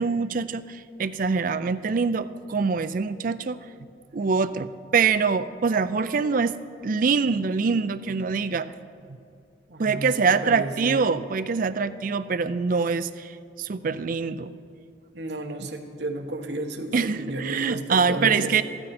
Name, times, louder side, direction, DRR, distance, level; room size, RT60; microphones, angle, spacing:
voice 1, 0.0-3.6 4.1-6.5 6.8-8.7 9.8-13.3 13.6-14.5 16.9-18.6, right 5 dB, 50° right, 12 dB, 0.4 m, -24 dB
voice 2, 9.7-11.1 15.1-18.5, right 1 dB, 70° right, 4 dB, 1.2 m, -32 dB
14.5 x 13.5 x 4.3 m, 2.4 s
head